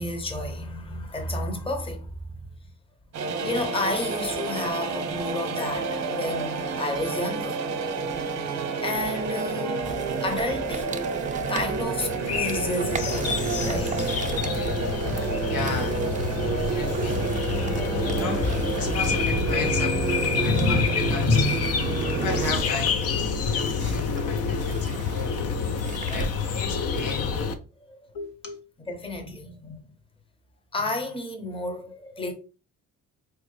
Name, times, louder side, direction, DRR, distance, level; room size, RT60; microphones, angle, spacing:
voice 1, 0.0-2.4 3.4-7.6 8.8-11.2 11.5-14.5 16.6-16.9 17.6-17.8 19.1-19.2 20.4-21.6 27.9-28.1 28.9-29.8 30.7-32.3, left 2 dB, 20° left, 0.7 m, -30 dB
sound 1, 3.1-22.6, right 4 dB, 60° right, 0.7 m, -29 dB
sound 2, 9.8-26.7, right 5 dB, 25° right, 0.4 m, -40 dB
sound 3, 12.0-27.5, left 6 dB, 55° left, 0.5 m, -28 dB
voice 2, 15.5-16.0 16.5-17.2 18.1-18.4 18.8-20.0 20.4-21.5 22.1-23.0 23.5-25.3 26.1-27.3 28.1-28.6, left 4 dB, 90° left, 0.9 m, -34 dB
4.5 x 2.0 x 3.2 m
cardioid pair, 90°, 30 cm